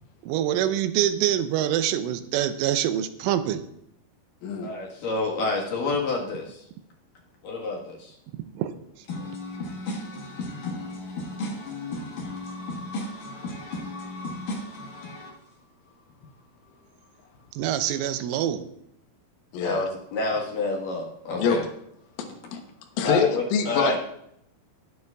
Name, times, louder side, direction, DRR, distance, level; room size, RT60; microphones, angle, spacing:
voice 1, 0.2-3.6 8.6-8.7 17.6-18.7, right 11 dB, 85° right, 10 dB, 3.2 m, -25 dB
voice 2, 4.6-6.7 7.4-8.2 9.1-15.4 19.6-21.7 22.4-22.5 23.0-24.0, left 2 dB, 60° left, -2 dB, 2.5 m, -31 dB
voice 3, 19.5-19.8 21.4-21.6 22.5-22.6 23.0-24.1, left 6 dB, 85° left, 4 dB, 3.8 m, -24 dB
20.0 x 9.3 x 2.4 m, 0.75 s
omnidirectional pair, 5.6 m